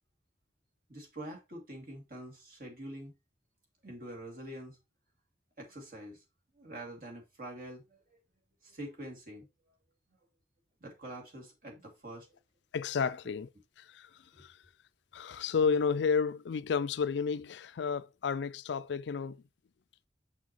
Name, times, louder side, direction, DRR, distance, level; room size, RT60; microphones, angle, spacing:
voice 1, 0.9-3.1 3.8-4.8 5.6-6.2 6.6-8.2 8.6-9.5 10.8-12.4 14.3-14.4, right 1 dB, 50° right, 2.4 m, -45 dB
voice 2, 12.7-13.5 13.8-14.1 14.4-14.6 15.1-19.4, left 5 dB, 75° left, 0.4 m, -31 dB
6.2 x 6.0 x 2.9 m
head